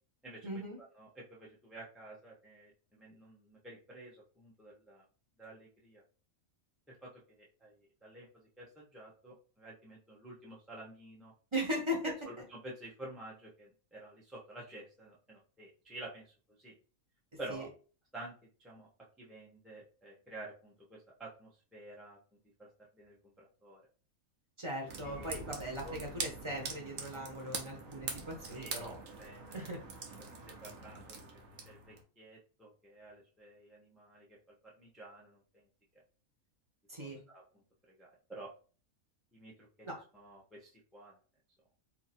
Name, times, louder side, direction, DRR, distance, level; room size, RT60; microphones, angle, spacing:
voice 1, 0.4-0.8 11.5-12.1 17.5-17.7 24.6-29.0 29.5-29.8 36.9-37.2 39.8-40.0, equal, 25° right, 0 dB, 0.9 m, -38 dB
voice 2, 0.9-5.0 5.4-6.0 6.9-11.3 12.3-16.7 17.4-17.7 18.1-18.3 18.6-18.9 19.2-22.2 22.6-22.7 22.9-23.8 25.0-25.4 25.8-26.0 28.5-28.9 29.2-29.6 30.6-31.2 31.6-34.4 34.8-35.7 37.0-37.4 37.9-38.5 39.3-39.7 40.1-41.2, right 2 dB, ahead, -5 dB, 0.5 m, -50 dB
sound 1, 24.9-32.0, right 4 dB, 70° right, 1.2 m, -44 dB
2.9 x 2.7 x 4.2 m, 0.38 s
omnidirectional pair, 1.5 m